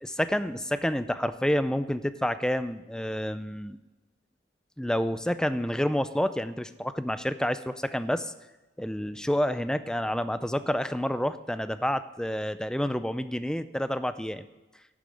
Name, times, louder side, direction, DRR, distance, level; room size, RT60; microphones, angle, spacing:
voice 1, 0.0-3.8 4.8-8.3 8.8-14.4, equal, 5° left, 12 dB, 0.5 m, -29 dB
11.5 x 8.7 x 7.7 m, 1.1 s
head